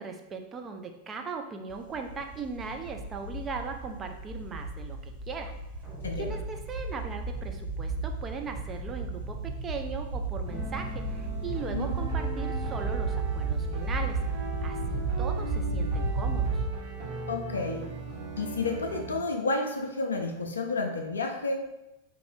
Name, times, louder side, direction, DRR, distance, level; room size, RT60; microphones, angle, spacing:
voice 1, 0.0-5.5 6.2-16.6, right 5 dB, 25° right, 4 dB, 0.4 m, -39 dB
sound 1, 1.7-16.6, right 3 dB, 85° right, 1.4 m, -33 dB
sound 2, 5.8-7.3, left 3 dB, 5° right, 1.1 m, -50 dB
voice 2, 6.0-6.4 11.7-11.9 17.3-17.9 18.4-21.7, left 3 dB, 70° left, 4 dB, 0.3 m, -31 dB
sound 3, 10.5-19.2, right 3 dB, 55° right, 1.1 m, -38 dB
3.4 x 2.4 x 3.3 m, 0.94 s
figure-of-eight pair, 90°, 0 cm